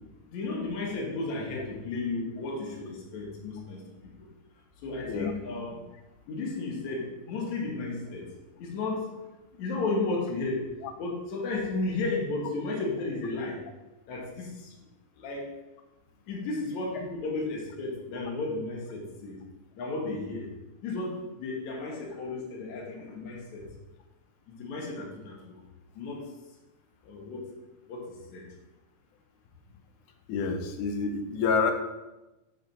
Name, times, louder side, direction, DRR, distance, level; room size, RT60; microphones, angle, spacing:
voice 1, 0.3-3.8 4.8-5.8 6.3-8.3 8.6-9.1 9.5-10.7 11.0-13.6 14.1-14.7 15.2-15.5 16.3-19.4 19.8-20.5 20.8-23.6 24.5-25.6 25.9-26.3 27.0-27.4 27.9-28.4, left 3 dB, 70° left, -2 dB, 2.8 m, -33 dB
voice 2, 30.3-31.7, left 5 dB, 90° left, 6 dB, 2.2 m, -28 dB
7.4 x 6.2 x 4.1 m, 1.0 s
omnidirectional pair, 3.5 m